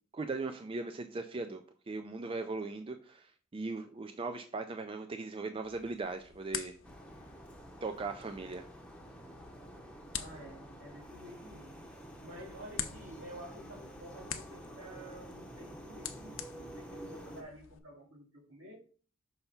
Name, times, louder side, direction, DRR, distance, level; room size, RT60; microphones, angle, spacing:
voice 1, 0.1-1.6 1.9-6.7 7.8-8.7, right 3 dB, 25° right, 7 dB, 0.4 m, -39 dB
sound 1, 5.6-17.8, left 9 dB, 80° left, 0.7 m, -47 dB
sound 2, 6.8-17.4, equal, 5° left, 0.7 m, -49 dB
voice 2, 10.2-11.9 12.2-18.8, right 1 dB, 70° right, -1 dB, 2.3 m, -50 dB
5.6 x 3.4 x 5.6 m, 0.41 s
head